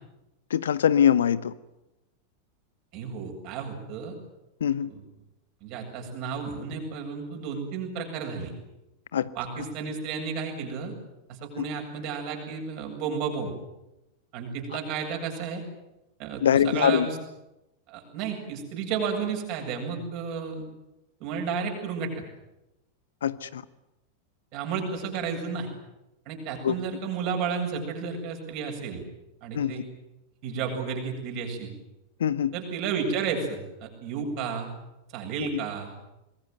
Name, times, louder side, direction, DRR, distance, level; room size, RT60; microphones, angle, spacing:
voice 1, 0.5-1.5 4.6-4.9 9.1-9.3 11.6-11.7 16.4-17.1 23.2-23.6 26.6-26.7 29.5-29.7 32.2-32.5 35.4-35.6, left 9 dB, 65° left, 17 dB, 0.9 m, -23 dB
voice 2, 2.9-4.2 4.8-5.0 5.6-8.5 9.3-11.0 11.3-13.5 14.3-15.6 16.2-17.2 17.9-20.7 21.2-22.1 24.5-25.7 26.3-29.0 29.4-29.8 30.4-31.7 32.5-34.7 35.1-35.9, right 6 dB, 45° right, 2 dB, 8.0 m, -32 dB
25.5 x 21.0 x 9.4 m, 0.93 s
figure-of-eight pair, 90°, 0 cm